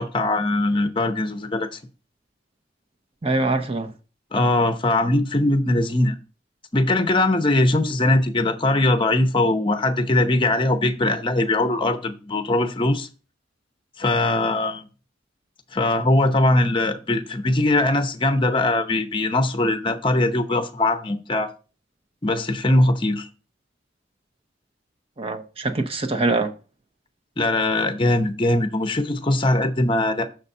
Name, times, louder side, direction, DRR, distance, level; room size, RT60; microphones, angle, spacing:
voice 1, 0.0-1.7 4.3-6.1 6.7-13.1 14.0-14.8 15.7-21.5 22.2-23.3 27.4-30.2, left 2 dB, 25° left, 0.7 m, -21 dB
voice 2, 3.2-3.9 25.2-26.5, right 2 dB, 30° right, 0.7 m, -23 dB
6.6 x 4.1 x 5.4 m
head